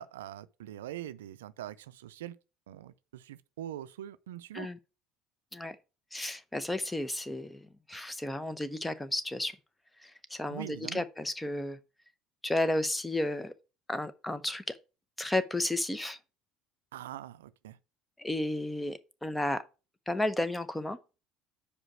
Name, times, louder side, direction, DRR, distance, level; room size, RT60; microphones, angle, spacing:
voice 1, 0.0-2.4 2.7-4.7 10.5-11.0 16.9-17.8, right 12 dB, 85° right, 0.4 m, -43 dB
voice 2, 6.1-9.5 10.0-11.8 12.4-13.5 13.9-14.8 15.2-16.2 18.2-19.6 20.1-21.0, left 1 dB, 10° left, 0.8 m, -33 dB
5.0 x 5.0 x 6.0 m
hypercardioid pair, 75°, 0 cm